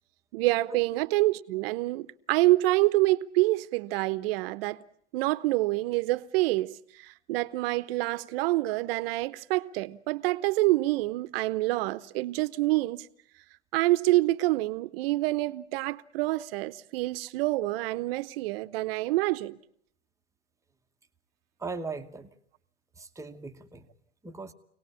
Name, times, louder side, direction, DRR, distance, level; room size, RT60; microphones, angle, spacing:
voice 1, 0.3-4.8 5.1-13.1 13.7-19.6, right 19 dB, 50° right, 1.0 m, -27 dB
voice 2, 21.6-22.3 23.0-23.9 24.2-24.5, right 3 dB, 10° right, 1.1 m, -38 dB
25.5 x 18.5 x 8.5 m
hypercardioid pair, 125°, 37 cm